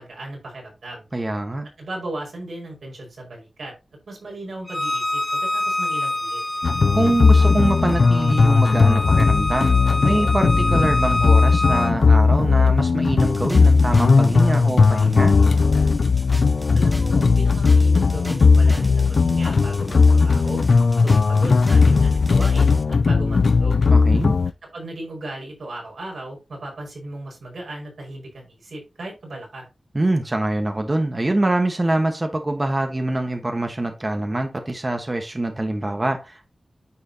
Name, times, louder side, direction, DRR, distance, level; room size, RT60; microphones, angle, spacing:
voice 1, 0.0-1.1 1.8-3.7 4.1-6.4 16.7-20.6 21.0-23.9 24.6-29.7, right 1 dB, 90° right, 5.2 m, -36 dB
voice 2, 1.1-1.7 6.9-9.8 10.0-15.4 23.9-24.3 29.9-36.5, right 1 dB, 30° right, 1.2 m, -24 dB
Bowed string instrument, 4.7-11.9, left 2 dB, 20° left, 0.7 m, -26 dB
sound 1, 6.6-24.5, left 4 dB, 80° left, 0.3 m, -17 dB
sound 2, 13.2-22.8, equal, 5° right, 1.1 m, -38 dB
9.8 x 6.2 x 2.8 m
wide cardioid pair, 85°, 0 cm